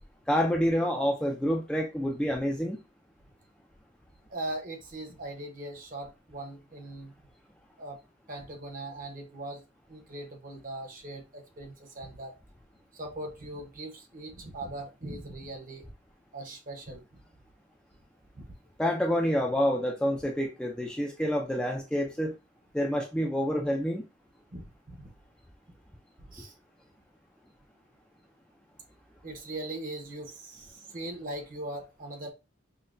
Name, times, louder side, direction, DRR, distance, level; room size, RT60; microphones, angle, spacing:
voice 1, 0.3-2.8 18.8-22.4 22.7-24.0, equal, 5° left, 0.4 m, -28 dB
voice 2, 4.3-7.2 7.8-8.0 8.3-9.6 9.9-12.3 12.9-15.8 16.3-17.0 18.3-18.5 24.5-25.1 26.2-26.5 29.2-32.3, right 1 dB, 45° right, 1.0 m, -40 dB
5.4 x 2.2 x 2.6 m
head